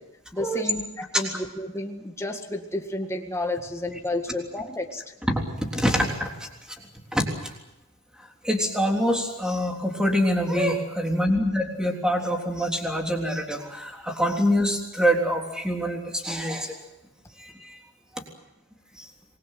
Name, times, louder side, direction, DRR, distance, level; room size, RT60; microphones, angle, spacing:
voice 1, 0.3-5.0, left 1 dB, 15° left, 3 dB, 1.8 m, -31 dB
voice 2, 5.3-6.5 7.1-7.5 8.2-16.8 17.4-17.8 18.1-18.2 19.0-19.1, equal, 5° right, 1 dB, 3.5 m, -25 dB
26.5 x 21.5 x 7.5 m, 0.93 s
head